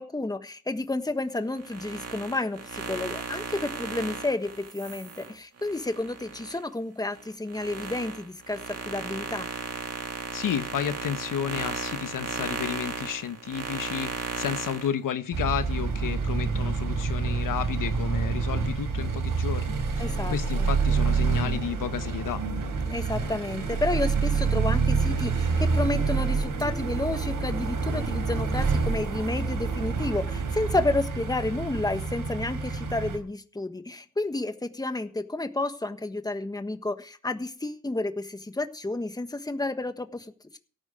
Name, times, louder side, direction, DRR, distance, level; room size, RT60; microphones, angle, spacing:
voice 1, 0.0-9.5 20.0-20.7 22.9-40.3, left 2 dB, 10° left, 1.3 m, -31 dB
sound 1, 1.5-6.6 7.1-14.9, right 5 dB, 50° right, 2.3 m, -35 dB
voice 2, 10.3-22.4, left 9 dB, 90° left, 1.2 m, -32 dB
sound 2, 15.3-33.2, right 4 dB, 90° right, 3.7 m, -27 dB
17.0 x 9.4 x 5.0 m
cardioid pair, 100°, 31 cm